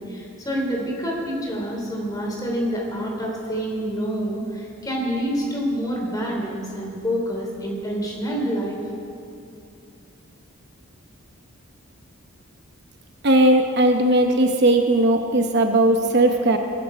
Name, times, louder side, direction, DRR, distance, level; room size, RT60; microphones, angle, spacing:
voice 1, 0.0-8.8, equal, 15° left, -1 dB, 3.0 m, -27 dB
voice 2, 13.2-16.6, right 1 dB, 50° right, 4 dB, 0.9 m, -18 dB
22.5 x 11.5 x 4.9 m, 2.7 s
head